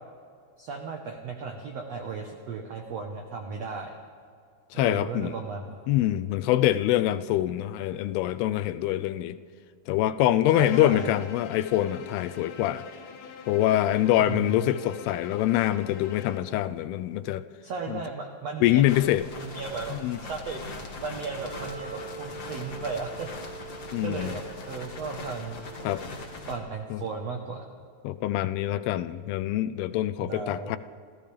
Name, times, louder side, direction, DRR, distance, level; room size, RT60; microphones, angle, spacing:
voice 1, 0.6-3.9 4.7-6.0 10.5-11.1 14.2-14.8 17.6-18.9 19.4-23.3 23.6-23.8 24.0-25.6 26.5-27.6 30.2-30.8, right 5 dB, 80° right, 1.4 m, -36 dB
voice 2, 4.7-5.4 5.9-9.4 9.9-12.8 13.5-17.4 17.9-18.0 18.6-19.2 19.9-20.2 23.9-24.4 25.8-26.0 26.9-27.0 28.0-30.8, left 13 dB, 85° left, 2.5 m, -25 dB
Bowed string instrument, 10.5-16.6, left 6 dB, 70° left, 2.4 m, -44 dB
sound 1, 18.9-26.6, left 2 dB, 50° left, 1.2 m, -41 dB
Wind instrument woodwind instrument, 21.4-26.5, right 3 dB, 60° right, 3.6 m, -44 dB
28.5 x 15.0 x 3.4 m
omnidirectional pair, 4.6 m